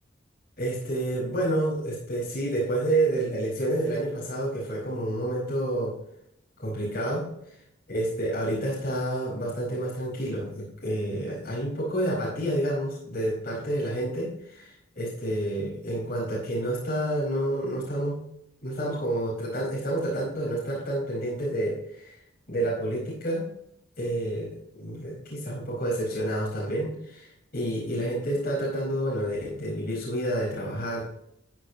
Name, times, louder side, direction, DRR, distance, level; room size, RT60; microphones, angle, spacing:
voice 1, 0.6-5.9 6.6-7.6 7.9-18.2 18.6-22.2 22.5-23.5 24.0-31.0, right 1 dB, 50° left, -6 dB, 4.8 m, -29 dB
14.5 x 8.9 x 2.9 m, 0.78 s
head